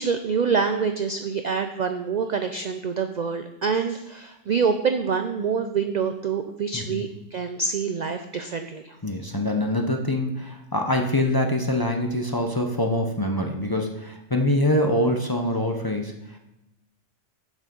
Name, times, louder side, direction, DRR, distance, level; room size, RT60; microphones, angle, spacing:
voice 1, 0.0-9.0, right 5 dB, 65° right, 7 dB, 0.4 m, -26 dB
voice 2, 6.7-7.1 9.0-16.4, left 1 dB, 25° left, 2 dB, 0.6 m, -24 dB
7.2 x 6.2 x 5.2 m, 0.91 s
omnidirectional pair, 1.3 m